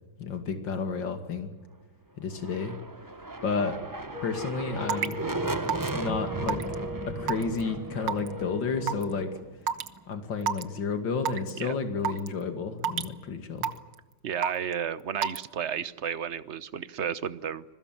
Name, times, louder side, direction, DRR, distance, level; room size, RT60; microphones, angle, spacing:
voice 1, 0.2-1.5 2.2-2.8 3.2-3.7 4.2-5.2 5.9-6.6 7.2-9.3 10.1-13.7, left 5 dB, 75° left, 7 dB, 3.0 m, -31 dB
sound 1, 2.3-10.1, right 2 dB, 15° right, 0.7 m, -36 dB
Wind instrument woodwind instrument, 4.1-9.4, left 1 dB, 45° left, 4.5 m, -40 dB
Raindrop / Water tap faucet / Drip, 4.9-5.1 5.7-6.0 6.5-6.7 7.3-7.6 8.1-8.3 8.9-9.0 9.7-9.9 10.4-10.6 11.2-11.5 12.0-12.3 12.8-13.1 13.6-13.9 14.4-14.7 15.2-15.4, right 7 dB, 75° right, 1.8 m, -28 dB
voice 2, 14.2-17.6, right 8 dB, 45° right, 15 dB, 1.1 m, -32 dB
26.5 x 21.5 x 7.6 m, 1.1 s
omnidirectional pair, 2.0 m